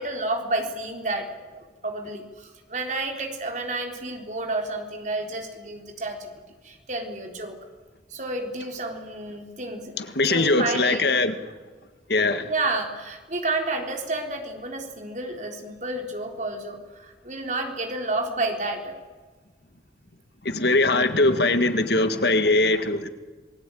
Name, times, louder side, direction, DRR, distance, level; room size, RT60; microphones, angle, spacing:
voice 1, 0.0-6.3 6.6-7.6 8.1-9.9 10.2-11.2 12.5-19.0, right 2 dB, 40° right, 3 dB, 3.8 m, -30 dB
voice 2, 10.0-11.4 12.1-12.5 20.4-23.1, left 2 dB, 65° left, 9 dB, 1.8 m, -21 dB
27.5 x 20.0 x 9.2 m, 1.4 s
head